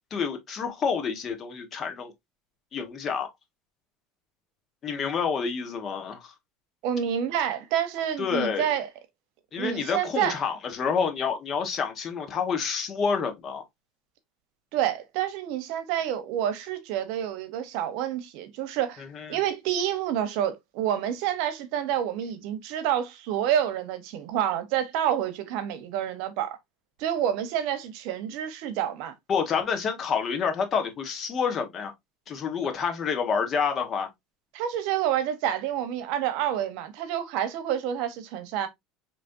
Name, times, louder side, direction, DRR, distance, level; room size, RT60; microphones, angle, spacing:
voice 1, 0.1-2.1 2.7-3.3 4.8-6.3 8.2-8.7 9.5-13.6 19.1-19.4 29.3-31.9 32.3-34.1, left 6 dB, 35° left, 1.2 m, -28 dB
voice 2, 6.8-8.9 9.6-10.4 14.7-19.0 19.3-26.6 27.0-29.1 34.5-38.7, right 10 dB, 70° right, 0.9 m, -28 dB
5.0 x 3.1 x 2.6 m
supercardioid pair, 125°, 0 cm